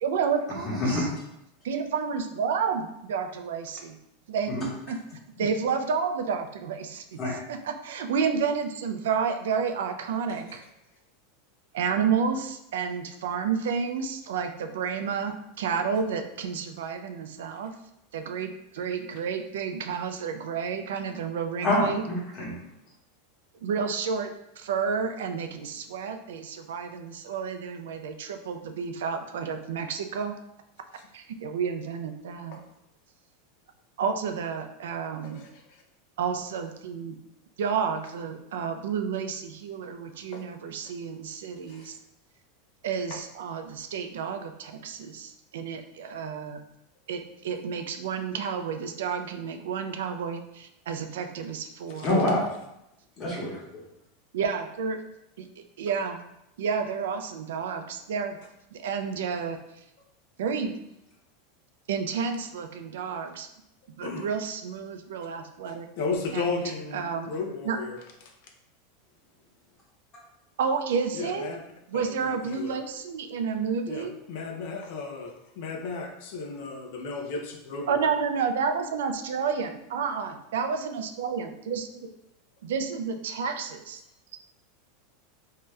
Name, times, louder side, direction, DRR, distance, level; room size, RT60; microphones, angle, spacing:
voice 1, 0.0-1.1 1.6-4.0 4.3-4.5 4.9-5.0 5.4-7.2 7.5-10.6 11.7-17.7 18.1-22.0 23.6-30.3 31.1-32.6 34.0-35.4 36.2-37.2 37.6-41.9 42.8-46.6 47.1-52.1 54.3-55.0 55.4-55.5 55.8-56.2 56.6-58.4 58.7-59.6 60.4-60.7 61.9-63.5 64.0-65.9 66.3-66.6 66.9-67.3 67.7-67.8 70.6-71.5 71.9-74.1 77.9-81.9 82.6-84.0, right 6 dB, 85° right, 6 dB, 0.4 m, -30 dB
voice 2, 0.6-1.1 4.5-4.6 7.2-7.3 21.6-22.5 52.0-52.4 53.2-53.5, left 1 dB, 25° left, -5 dB, 1.1 m, -26 dB
voice 3, 35.4-35.8 40.3-40.4 41.7-41.9 51.9-52.2 64.0-64.3 65.7-68.0 71.1-71.6 71.9-72.8 73.9-78.0, left 4 dB, 55° left, 3 dB, 0.5 m, -35 dB
2.7 x 2.2 x 3.2 m, 0.83 s
supercardioid pair, 160°, 0 cm